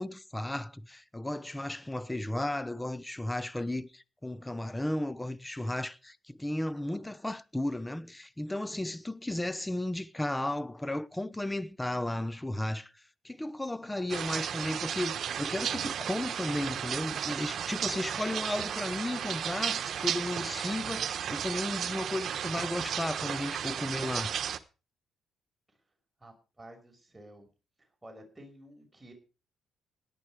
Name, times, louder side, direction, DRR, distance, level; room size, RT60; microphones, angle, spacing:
voice 1, 0.0-12.9 13.2-24.4, left 1 dB, 10° left, 1.0 m, -34 dB
sound 1, 14.1-24.6, right 8 dB, 60° right, 1.2 m, -34 dB
voice 2, 26.2-27.5 27.8-29.1, right 1 dB, 15° right, 5.6 m, -52 dB
17.5 x 11.0 x 4.9 m
cardioid pair, 90°, 0 cm